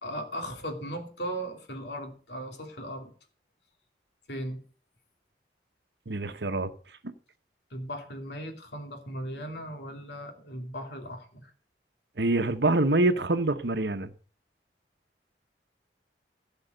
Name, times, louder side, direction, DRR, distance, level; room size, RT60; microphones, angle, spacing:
voice 1, 0.0-3.1 4.3-4.6 7.7-11.5, equal, 75° left, 2.7 m, -37 dB
voice 2, 6.1-6.7 7.0-7.1 12.2-14.1, right 2 dB, 70° right, 1.1 m, -25 dB
16.0 x 5.6 x 6.6 m
head